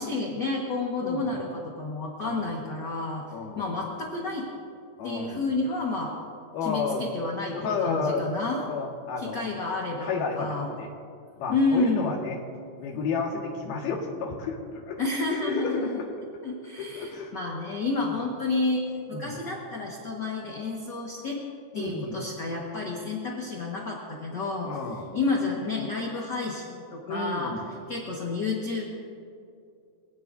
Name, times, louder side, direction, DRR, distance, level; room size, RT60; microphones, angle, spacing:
voice 1, 0.0-3.2 3.5-4.5 5.0-6.1 6.6-7.6 7.8-8.6 9.2-10.7 11.5-12.1 15.0-16.0 16.4-18.8 19.1-21.4 21.7-24.7 25.1-27.5 27.9-28.8, left 3 dB, 45° left, -2 dB, 1.4 m, -30 dB
voice 2, 1.0-1.4 2.2-2.5 3.3-3.7 5.0-5.4 6.5-7.1 7.5-8.3 8.7-9.5 10.0-10.9 11.4-12.4 12.8-15.0 15.5-16.1 16.8-17.4 18.0-18.1 19.1-19.3 21.7-22.2 24.6-25.1 27.1-27.7, left 4 dB, 80° left, 0 dB, 3.6 m, -31 dB
24.5 x 17.0 x 2.7 m, 2.4 s
omnidirectional pair, 4.3 m